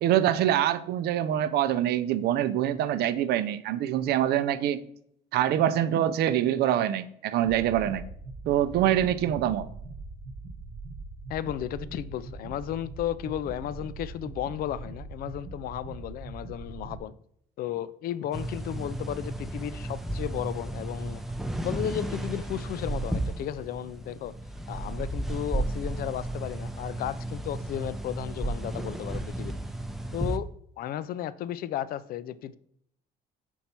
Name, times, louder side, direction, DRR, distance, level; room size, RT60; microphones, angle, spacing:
voice 1, 0.0-4.8 5.3-8.0 8.5-9.7, right 11 dB, 75° right, 12 dB, 0.5 m, -25 dB
sound 1, 7.4-17.0, right 3 dB, 50° right, 1.0 m, -42 dB
voice 2, 11.3-17.1 17.6-21.2 21.6-24.3 24.7-29.5 30.1-30.5 30.8-32.6, left 11 dB, 60° left, 17 dB, 0.4 m, -34 dB
sound 2, 18.3-30.4, right 1 dB, ahead, 0.5 m, -33 dB
5.4 x 4.6 x 4.3 m, 0.69 s
cardioid pair, 110°, 17 cm